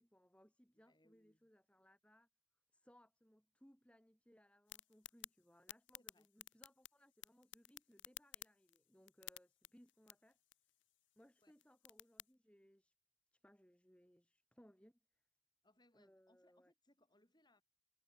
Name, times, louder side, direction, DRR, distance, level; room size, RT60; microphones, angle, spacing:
voice 1, 0.0-2.3 2.7-10.4 11.2-12.9 13.3-15.2 15.9-16.7, equal, 5° left, 2.4 m, -68 dB
voice 2, 0.7-1.5 6.0-6.3 11.4-11.5 15.6-17.6, left 1 dB, 20° left, 7.7 m, -74 dB
sound 1, 4.7-12.3, left 14 dB, 65° left, 0.9 m, -57 dB
head